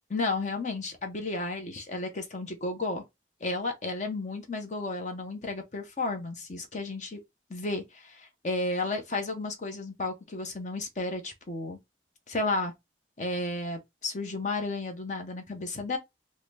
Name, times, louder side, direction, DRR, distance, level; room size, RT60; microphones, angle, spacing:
voice 1, 0.1-3.0 3.4-7.2 7.5-11.8 12.3-12.7 13.2-16.0, left 2 dB, 40° left, 0.7 m, -33 dB
3.7 x 2.1 x 3.2 m
head